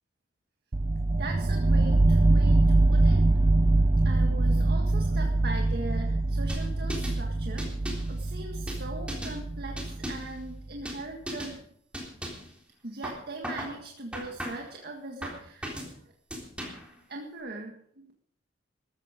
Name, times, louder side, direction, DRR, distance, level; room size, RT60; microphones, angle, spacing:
sound 1, 0.7-10.5, right 2 dB, 35° right, 0.5 m, -24 dB
voice 1, 1.2-3.3 4.0-7.8 8.1-11.6 12.8-15.9 17.1-17.7, right 2 dB, 55° right, 1 dB, 1.8 m, -40 dB
sound 2, 6.5-7.2 7.6-8.1 8.7-9.4 9.8-10.3 10.9-11.0 11.3-11.6 11.9-12.5 13.0-13.8 14.1-14.7 15.2-15.9 16.3-16.9, equal, 5° right, 3.5 m, -37 dB
14.0 x 14.0 x 5.1 m, 0.66 s
head